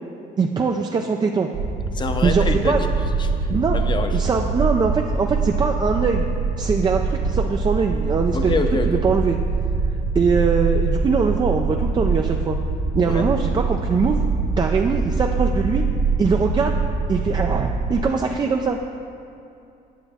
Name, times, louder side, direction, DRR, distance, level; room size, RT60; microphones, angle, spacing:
voice 1, 0.4-1.5 2.2-2.8 3.5-3.8 4.1-6.3 6.6-9.4 10.1-12.6 12.9-14.2 14.6-15.8 16.2-16.7 17.1-18.8, right 5 dB, 25° right, 2 dB, 0.4 m, -22 dB
sound 1, 1.5-18.0, right 4 dB, 80° right, 1.7 m, -23 dB
voice 2, 1.9-2.9 3.2-4.1 8.3-9.0 13.0-13.2, left 4 dB, 25° left, 6 dB, 0.6 m, -26 dB
9.2 x 7.0 x 3.5 m, 2.6 s
cardioid pair, 110°, 17 cm